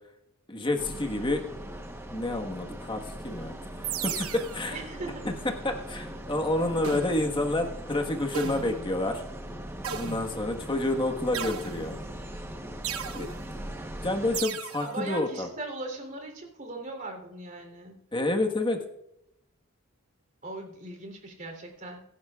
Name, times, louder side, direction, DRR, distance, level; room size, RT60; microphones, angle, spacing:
voice 1, 0.5-1.4 2.1-4.8 5.2-5.3 5.6-9.2 9.9-12.0 13.1-13.3 13.9-15.5 18.1-18.8, left 2 dB, 25° left, 3 dB, 1.5 m, -29 dB
sound 1, 0.8-14.4, right 1 dB, 10° right, 1.1 m, -40 dB
sound 2, 3.8-4.7 6.8-7.4 8.3-8.9 9.8-10.6 11.3-12.1 12.8-13.4 14.3-14.9, right 7 dB, 80° right, 1.0 m, -35 dB
voice 2, 4.7-5.2 14.8-18.0 20.4-22.0, right 2 dB, 40° right, 2 dB, 3.6 m, -39 dB
25.5 x 11.5 x 2.5 m, 0.83 s
head